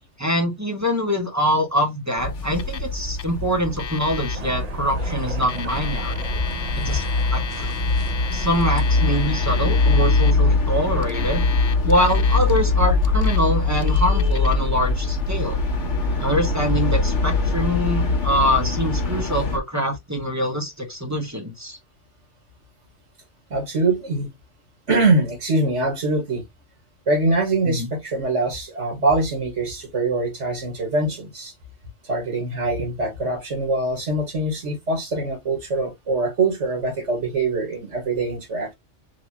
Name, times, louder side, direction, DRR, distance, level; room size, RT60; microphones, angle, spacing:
voice 1, 0.2-6.2 6.8-7.0 7.3-7.8 8.3-11.4 11.8-15.6 16.2-21.8 27.7-27.9, equal, 15° right, 1.2 m, -24 dB
sound 1, 2.2-19.6, left 3 dB, 75° left, 1.5 m, -22 dB
Alarm, 2.6-2.9 3.2-3.3 3.8-4.4 5.3-10.3 11.0-12.6 13.0-13.4 13.7-14.6, left 7 dB, 55° left, 0.4 m, -35 dB
sound 2, 4.3-9.7, right 5 dB, 40° right, 0.7 m, -36 dB
voice 2, 23.5-24.3 24.9-26.4 27.1-31.5 32.0-38.7, right 2 dB, 80° right, 2.1 m, -23 dB
4.9 x 2.9 x 2.9 m
omnidirectional pair, 1.2 m